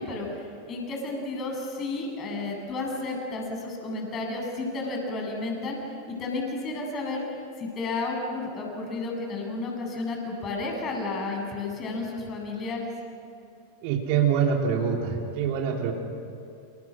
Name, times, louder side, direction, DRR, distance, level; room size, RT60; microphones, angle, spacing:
voice 1, 0.0-5.8 6.1-7.2 7.6-12.9, left 3 dB, 30° left, 1 dB, 8.0 m, -32 dB
voice 2, 13.8-15.9, right 7 dB, 45° right, 2 dB, 3.6 m, -25 dB
29.5 x 29.0 x 6.4 m, 2.6 s
figure-of-eight pair, 90°, 0 cm